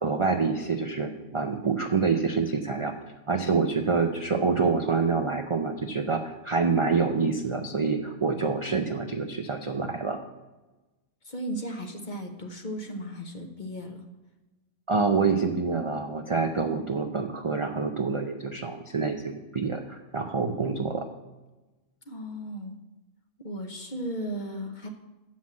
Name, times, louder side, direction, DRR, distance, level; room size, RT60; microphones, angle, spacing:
voice 1, 0.0-2.9 3.3-10.2 14.9-21.1, right 4 dB, 45° right, 4 dB, 0.4 m, -27 dB
voice 2, 11.2-14.0 22.1-22.8 23.4-24.9, equal, 40° left, 4 dB, 1.0 m, -35 dB
7.5 x 5.7 x 7.4 m, 1.1 s
omnidirectional pair, 1.3 m